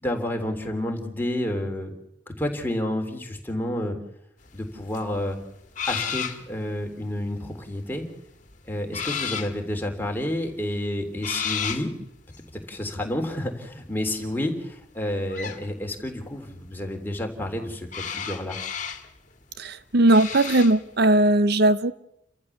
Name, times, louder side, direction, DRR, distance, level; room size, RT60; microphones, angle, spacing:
voice 1, 0.0-1.9 2.3-4.0 4.5-5.4 5.9-8.1 8.7-11.9 12.7-18.6, left 1 dB, 10° left, 3.4 m, -30 dB
sound 1, 4.5-4.6 4.9-6.5 7.0-7.3 7.7-8.4 8.9-9.6 10.4-10.5 10.7-10.8 11.2-11.9 12.3-12.6 15.3-15.6 17.9-19.1 20.1-20.8, left 7 dB, 45° left, 2.1 m, -31 dB
voice 2, 19.6-21.9, right 1 dB, 60° right, 0.8 m, -19 dB
30.0 x 14.0 x 7.2 m
head